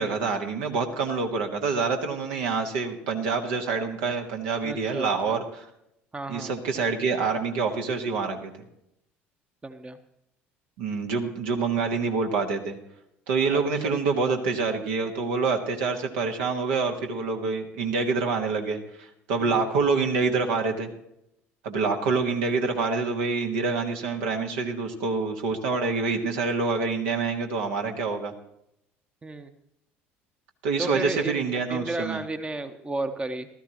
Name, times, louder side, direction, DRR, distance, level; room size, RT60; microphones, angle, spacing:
voice 1, 0.0-5.7 6.3-8.5 10.8-12.7 13.3-20.9 21.6-28.3 30.6-32.2, right 4 dB, 70° right, 3 dB, 1.5 m, -26 dB
voice 2, 4.6-5.4 6.1-6.5 9.6-10.0 13.5-13.9 19.4-19.7 29.2-29.5 30.8-31.4 31.7-33.5, right 2 dB, 15° right, 9 dB, 0.9 m, -33 dB
16.0 x 13.5 x 3.0 m, 0.80 s
figure-of-eight pair, 60°, 7 cm